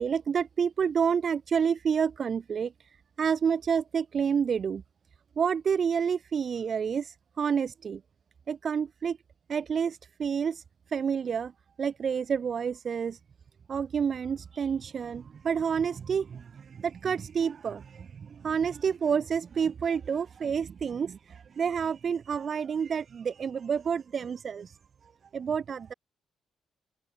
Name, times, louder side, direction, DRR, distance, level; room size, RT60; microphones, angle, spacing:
voice 1, 0.0-2.7 3.2-4.8 5.4-8.0 8.5-9.2 9.5-10.6 10.9-11.5 11.8-13.2 13.7-24.8 25.3-25.9, right 7 dB, 50° right, 0.9 m, -29 dB
cardioid pair, 90°, 0 cm